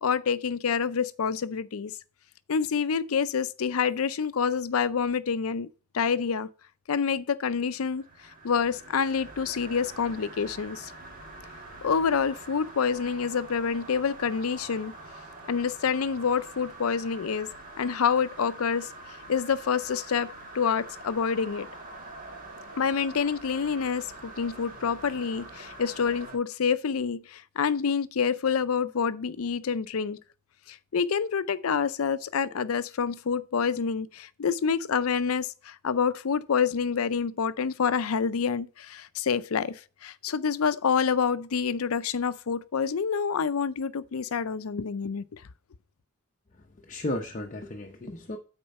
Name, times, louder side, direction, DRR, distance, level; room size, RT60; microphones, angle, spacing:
voice 1, 0.0-1.9 2.5-5.7 5.9-6.5 6.9-8.0 8.4-10.9 11.8-14.9 15.5-17.5 17.8-18.9 19.3-21.7 22.7-30.2 30.7-45.4, left 6 dB, 90° left, 0.5 m, -27 dB
sound 1, 7.7-26.4, right 2 dB, 40° right, 1.7 m, -45 dB
voice 2, 46.5-48.4, left 1 dB, 35° left, 0.7 m, -35 dB
8.7 x 4.5 x 5.3 m
head